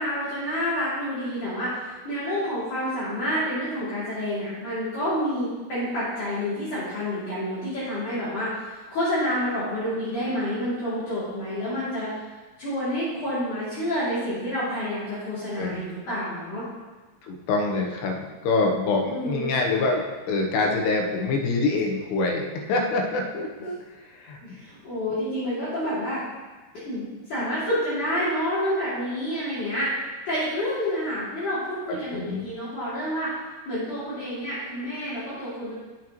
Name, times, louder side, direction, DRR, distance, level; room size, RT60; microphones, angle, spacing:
voice 1, 0.0-12.1 12.6-16.6 19.1-19.5 24.4-26.2 26.7-29.9 30.3-33.3 33.7-35.7, equal, 50° left, -12 dB, 4.0 m, -28 dB
voice 2, 17.3-23.8 24.1-24.4 31.9-32.4, left 3 dB, 75° left, 1 dB, 2.9 m, -25 dB
14.0 x 6.3 x 3.0 m, 1.2 s
omnidirectional pair, 5.0 m